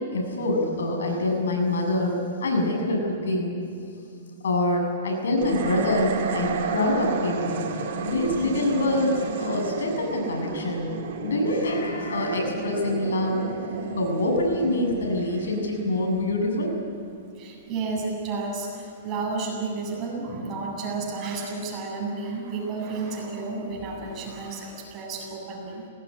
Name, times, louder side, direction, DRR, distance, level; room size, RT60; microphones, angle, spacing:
voice 1, 0.0-3.6 4.4-7.5 7.8-10.9 11.2-13.5 14.0-16.7 24.0-24.2, left 1 dB, 90° left, 1 dB, 7.4 m, -25 dB
sound 1, 5.4-16.7, right 4 dB, 60° right, 4.3 m, -32 dB
voice 2, 17.4-25.8, right 3 dB, 30° right, -1 dB, 7.9 m, -32 dB
21.5 x 19.0 x 10.0 m, 2.7 s
hypercardioid pair, 145°, 0 cm